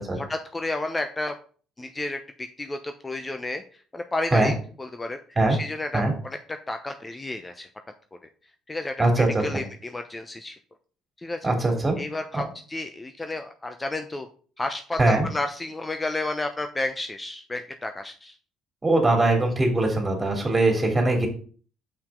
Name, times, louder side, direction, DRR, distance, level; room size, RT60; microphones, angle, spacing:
voice 1, 0.2-1.4 1.8-3.6 3.9-5.2 5.5-6.4 6.7-7.7 8.7-10.6 11.2-11.5 12.0-14.3 14.6-18.4, left 2 dB, 20° left, 7 dB, 0.8 m, -31 dB
voice 2, 11.4-12.0 12.3-12.4 15.0-15.3 18.8-21.3, right 2 dB, 25° right, 3 dB, 3.3 m, -21 dB
6.8 x 5.7 x 3.8 m, 0.42 s
hypercardioid pair, 50°, 0 cm